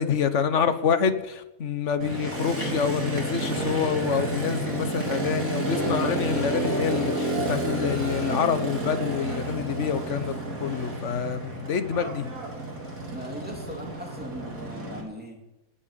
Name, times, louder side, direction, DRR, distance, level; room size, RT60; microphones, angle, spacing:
voice 1, 0.0-10.3 10.6-12.3, left 7 dB, 55° left, 11 dB, 1.4 m, -27 dB
Motorcycle, 2.0-15.0, right 1 dB, 70° right, 3.6 m, -30 dB
voice 2, 13.1-15.4, equal, 5° right, 0 dB, 3.1 m, -39 dB
19.5 x 8.7 x 7.0 m, 0.94 s
omnidirectional pair, 1.5 m